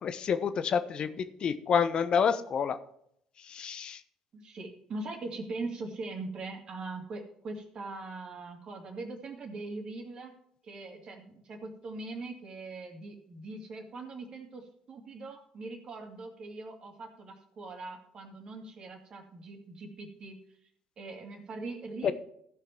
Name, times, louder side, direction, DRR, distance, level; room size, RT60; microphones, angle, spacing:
voice 1, 0.0-1.1 1.4-2.8 3.5-4.0 22.0-22.1, left 7 dB, 50° left, 12 dB, 0.9 m, -28 dB
voice 2, 0.6-1.1 4.3-10.3 10.6-20.4 21.0-22.1, right 3 dB, 45° right, 3 dB, 2.6 m, -41 dB
15.5 x 5.7 x 4.5 m, 0.72 s
hypercardioid pair, 60°, 2 cm